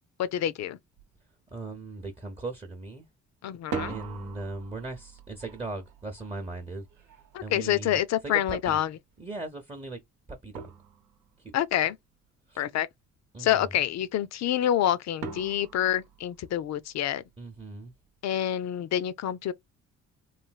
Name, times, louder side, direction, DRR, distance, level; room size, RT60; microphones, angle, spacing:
voice 1, 0.2-0.8 3.4-4.0 7.3-9.0 11.5-12.0 12.6-12.9 13.4-17.2 18.2-19.5, left 11 dB, 65° left, 0.5 m, -27 dB
sound 1, 1.0-1.1 1.5-2.0 3.5-8.4 10.0-10.1 10.6-11.5 15.2-16.9, right 5 dB, 90° right, 0.9 m, -42 dB
voice 2, 1.5-3.1 3.9-6.8 7.4-8.0 8.2-8.8 9.2-10.0 10.3-10.7 11.4-11.5 12.5-12.6 13.3-13.7 17.4-17.9, right 2 dB, 20° right, 0.7 m, -38 dB
3.2 x 2.6 x 2.3 m
cardioid pair, 90°, 30 cm